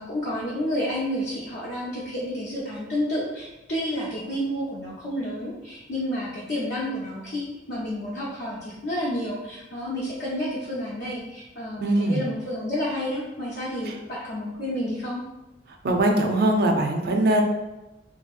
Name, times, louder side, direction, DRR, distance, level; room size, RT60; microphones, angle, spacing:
voice 1, 0.0-15.2, left 1 dB, 65° left, -7 dB, 0.6 m, -30 dB
voice 2, 11.8-12.2 15.8-17.4, right 1 dB, 55° right, 3 dB, 0.4 m, -21 dB
2.7 x 2.7 x 2.4 m, 1.0 s
head